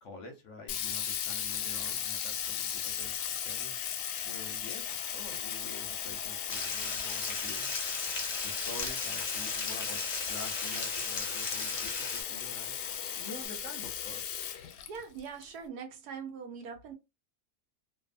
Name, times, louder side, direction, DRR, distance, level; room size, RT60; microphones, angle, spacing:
voice 1, 0.0-3.1 3.4-3.8 4.2-7.9 8.4-12.7 13.2-14.2, left 2 dB, 65° left, 0.9 m, -47 dB
Sink (filling or washing), 0.7-15.4, left 9 dB, 85° left, 1.1 m, -36 dB
sound 1, 4.8-13.5, right 1 dB, 40° right, 0.5 m, -54 dB
sound 2, 6.5-12.2, left 3 dB, 45° left, 0.5 m, -36 dB
voice 2, 14.6-16.9, right 6 dB, 75° right, 1.2 m, -42 dB
2.7 x 2.4 x 2.5 m
omnidirectional pair, 1.7 m